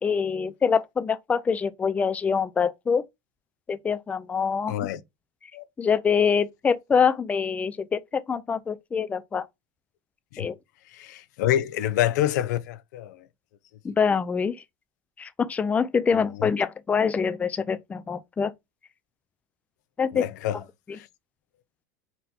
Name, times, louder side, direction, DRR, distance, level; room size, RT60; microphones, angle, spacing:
voice 1, 0.0-3.0 3.7-4.7 5.8-9.5 10.4-10.6 13.8-14.6 15.2-18.5 20.0-20.3, left 6 dB, 15° left, 0.3 m, -25 dB
voice 2, 4.7-5.0 5.5-5.6 10.3-10.5 10.9-13.3 16.4-16.5 20.1-20.6 20.9-21.1, left 12 dB, 80° left, 0.5 m, -27 dB
4.0 x 2.2 x 4.2 m
supercardioid pair, 115°, 9 cm